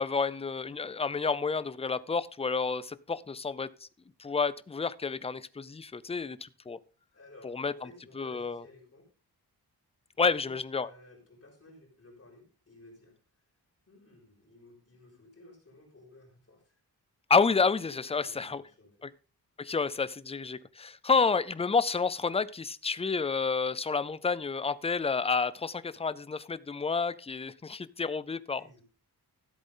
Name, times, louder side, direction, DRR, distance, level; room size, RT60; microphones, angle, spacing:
voice 1, 0.0-3.7 4.2-6.8 7.4-7.7 8.2-8.6 10.2-10.9 17.3-18.6 19.0-19.1 19.6-28.6, left 4 dB, 15° left, 17 dB, 0.4 m, -29 dB
voice 2, 7.1-9.0 10.2-13.2 13.9-16.8 17.8-19.1 28.5-28.8, left 2 dB, 35° left, 0 dB, 4.6 m, -55 dB
14.0 x 7.9 x 3.7 m, 0.36 s
wide cardioid pair, 155°, 40 cm